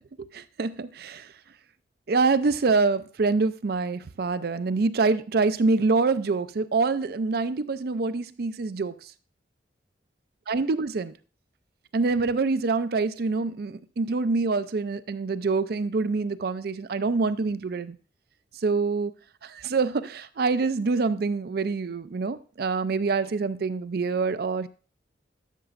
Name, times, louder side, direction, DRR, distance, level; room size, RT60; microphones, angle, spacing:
voice 1, 0.3-1.2 2.1-8.9 10.5-11.1 11.9-18.0 18.6-19.1 19.4-24.7, right 4 dB, 60° right, 0.5 m, -25 dB
12.0 x 6.8 x 2.5 m
head